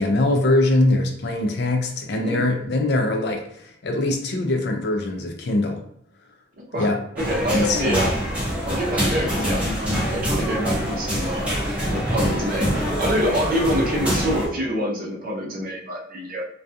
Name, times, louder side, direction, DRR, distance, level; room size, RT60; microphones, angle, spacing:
voice 1, 0.0-5.8 6.7-7.0 7.5-8.1, left 2 dB, 60° left, 4 dB, 0.4 m, -22 dB
voice 2, 6.6-8.1 8.6-11.4 11.9-16.4, equal, 50° right, -2 dB, 0.7 m, -26 dB
sound 1, 7.2-14.5, equal, 5° right, 0.7 m, -25 dB
2.3 x 2.3 x 2.6 m, 0.70 s
head